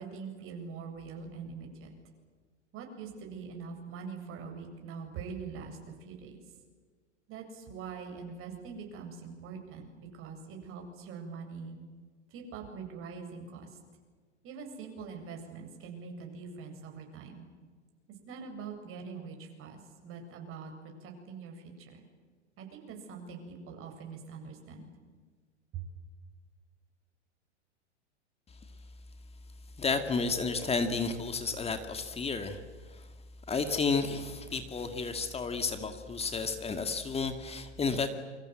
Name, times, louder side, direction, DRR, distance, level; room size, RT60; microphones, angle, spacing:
voice 1, 0.0-1.9 2.7-6.4 7.3-11.7 12.3-13.7 14.4-17.4 18.3-19.8 20.0-20.7 21.0-22.0 22.6-24.9 25.7-25.9, right 5 dB, 35° right, 3 dB, 7.9 m, -43 dB
voice 2, 29.8-32.6 32.9-33.0 33.5-38.1, left 4 dB, 15° left, 7 dB, 2.3 m, -32 dB
28.5 x 25.5 x 7.9 m, 1.5 s
hypercardioid pair, 105°, 35 cm